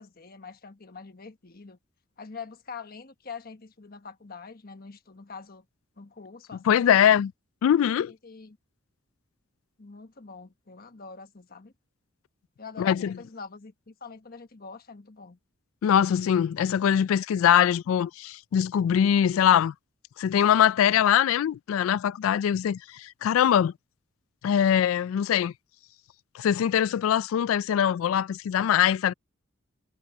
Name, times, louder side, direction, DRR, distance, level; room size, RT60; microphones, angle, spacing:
voice 1, 0.0-1.8 2.2-5.6 6.0-7.0 7.7-8.6 9.8-11.7 12.6-15.4, left 5 dB, 50° left, 1.2 m, -44 dB
voice 2, 6.7-7.3 7.6-8.1 12.8-13.1 15.8-19.7 20.2-23.7 24.4-25.5 26.3-29.1, left 9 dB, 85° left, 0.3 m, -22 dB
head